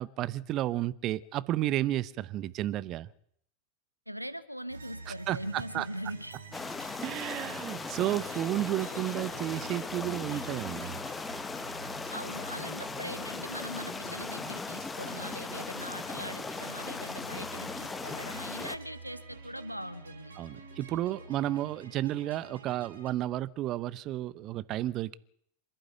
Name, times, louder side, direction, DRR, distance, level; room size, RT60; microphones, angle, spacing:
voice 1, 0.0-3.1 5.1-5.8 7.0-11.0 20.4-25.2, right 14 dB, 35° right, 0.9 m, -32 dB
voice 2, 4.1-6.4 12.1-20.3, equal, 90° right, 1.2 m, -41 dB
sound 1, 4.7-23.1, right 4 dB, 70° right, 4.5 m, -48 dB
sound 2, 6.5-18.8, left 4 dB, 15° left, 1.4 m, -38 dB
26.0 x 12.0 x 9.3 m
figure-of-eight pair, 90°, 0 cm